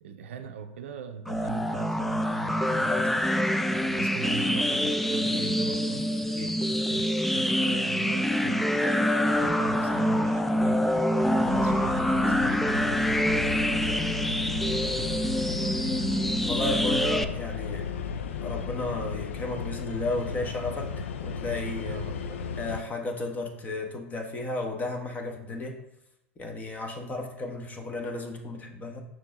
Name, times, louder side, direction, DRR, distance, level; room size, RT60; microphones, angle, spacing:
voice 1, 0.0-2.9 3.5-6.5 6.8-16.0 21.8-22.6, right 6 dB, 65° right, 0.5 m, -41 dB
sound 1, 1.3-17.2, equal, ahead, 0.3 m, -26 dB
voice 2, 2.9-3.7 5.3-5.5 6.4-6.8 11.2-11.7 16.5-17.8 18.4-20.9 21.2-22.0 22.6-25.8 26.4-29.0, left 2 dB, 20° left, 1.2 m, -34 dB
sound 2, 11.4-22.8, left 6 dB, 65° left, 0.5 m, -35 dB
6.4 x 4.5 x 3.7 m
figure-of-eight pair, 90°, 7 cm